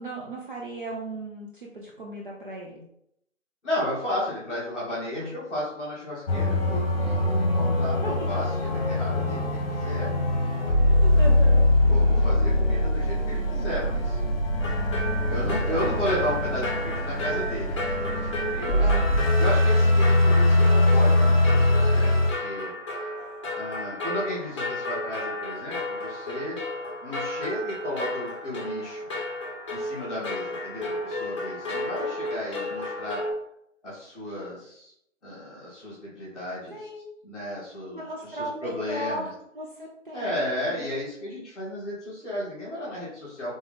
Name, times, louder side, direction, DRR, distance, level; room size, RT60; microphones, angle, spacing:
voice 1, 0.0-2.8 5.1-5.4 8.0-8.3 10.9-11.6 15.7-16.1 18.8-19.2 20.3-20.4 36.7-37.1 37.9-39.3 39.5-40.9, right 1 dB, 40° right, -1 dB, 0.7 m, -36 dB
voice 2, 3.6-10.1 11.1-11.4 11.8-14.2 15.3-19.1 19.4-22.1 22.4-22.7 23.5-26.6 27.0-29.1 29.7-33.2 33.8-34.9 35.2-36.8 37.2-38.0 38.3-39.3 40.1-43.5, left 1 dB, ahead, -16 dB, 1.5 m, -33 dB
sound 1, 6.3-22.3, left 1 dB, 50° left, 1.0 m, -22 dB
sound 2, 14.6-33.3, left 1 dB, 25° left, 0.9 m, -33 dB
3.9 x 3.6 x 3.7 m, 0.74 s
hypercardioid pair, 170°, 39 cm